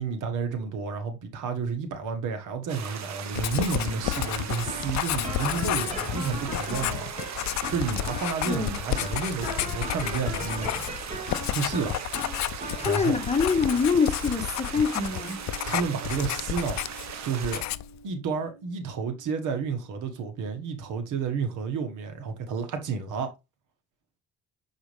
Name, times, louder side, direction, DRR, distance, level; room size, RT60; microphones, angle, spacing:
voice 1, 0.0-7.1 7.7-10.8 11.4-12.0 12.8-13.2 15.6-16.8 17.2-17.6 18.0-23.3, right 5 dB, 85° right, 1.4 m, -31 dB
sound 1, 2.7-17.6, right 7 dB, 65° right, 1.1 m, -38 dB
Writing, 3.3-17.1 17.4-18.0, left 15 dB, 65° left, 0.4 m, -31 dB
sound 2, 3.9-21.1, right 1 dB, 20° right, 2.1 m, -41 dB
voice 2, 8.4-8.8 12.8-15.4, left 5 dB, 20° left, 1.2 m, -25 dB
6.2 x 4.9 x 3.2 m
cardioid pair, 90°, 30 cm